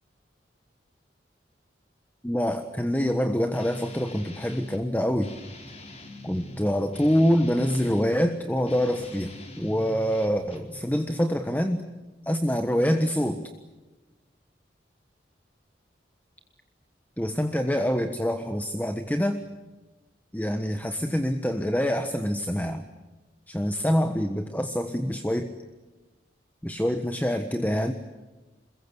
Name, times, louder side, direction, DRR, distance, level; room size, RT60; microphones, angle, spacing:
voice 1, 2.2-5.3 6.2-11.8 12.2-13.4 17.2-19.4 20.3-22.9 23.5-25.5 26.6-27.9, equal, 10° left, 7 dB, 1.3 m, -25 dB
Guitar, 3.5-4.8 5.2-8.2 8.6-10.8, left 1 dB, 40° left, 4.3 m, -44 dB
27.5 x 22.5 x 8.3 m, 1.2 s
head